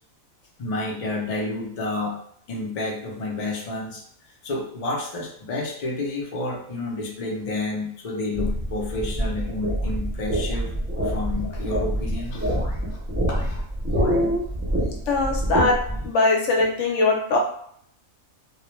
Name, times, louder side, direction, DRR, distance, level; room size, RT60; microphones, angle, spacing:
voice 1, 0.6-2.2 2.5-4.0 4.4-12.8 13.3-13.6, left 2 dB, 80° left, -1 dB, 0.3 m, -30 dB
sound 1, 8.3-16.1, right 1 dB, 20° right, 0.3 m, -26 dB
voice 2, 13.9-14.4 15.1-15.8 16.0-17.4, left 2 dB, 65° left, 0 dB, 0.8 m, -21 dB
2.3 x 2.1 x 3.0 m, 0.65 s
omnidirectional pair, 1.5 m